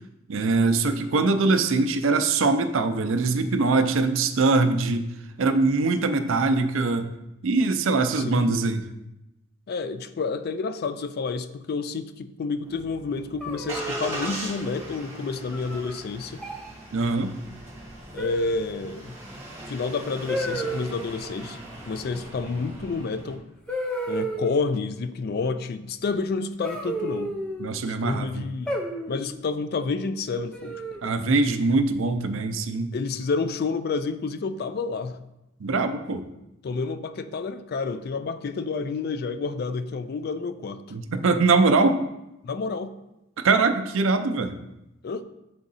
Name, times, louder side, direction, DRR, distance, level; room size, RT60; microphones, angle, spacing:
voice 1, 0.3-5.1 5.4-7.1 7.4-8.8 16.9-17.3 27.6-28.5 31.0-32.9 35.6-36.2 40.9-42.0 43.4-44.6, right 3 dB, 70° right, 8 dB, 0.5 m, -22 dB
voice 2, 9.7-16.4 18.1-19.2 19.7-21.6 21.9-23.4 24.1-27.4 27.9-28.7 29.1-30.8 32.9-35.2 36.6-40.8 42.4-42.9 45.0-45.2, left 4 dB, 50° left, 11 dB, 0.3 m, -29 dB
Engine starting, 12.6-23.4, right 1 dB, 10° right, 1.6 m, -40 dB
sound 1, 13.4-14.3 15.5-15.9 16.4-16.7 18.2-18.8 20.3-20.9 22.8-22.9 23.7-24.7 26.6-27.7 28.7-29.3 30.5-31.1, right 1 dB, 5° left, 0.6 m, -32 dB
7.1 x 3.7 x 4.0 m, 0.91 s
head